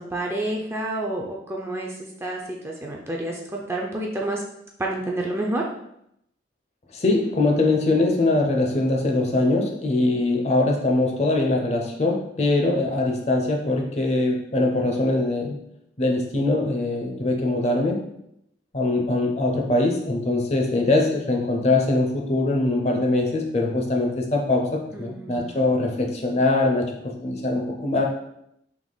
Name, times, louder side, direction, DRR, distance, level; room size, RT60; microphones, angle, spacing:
voice 1, 0.0-1.9 2.2-4.4 4.8-5.7 24.9-25.7, right 1 dB, 15° right, -1 dB, 0.4 m, -29 dB
voice 2, 6.9-15.6 16.0-18.0 18.7-26.9 27.2-28.1, left 2 dB, 35° left, 1 dB, 0.6 m, -22 dB
3.5 x 2.9 x 3.9 m, 0.77 s
head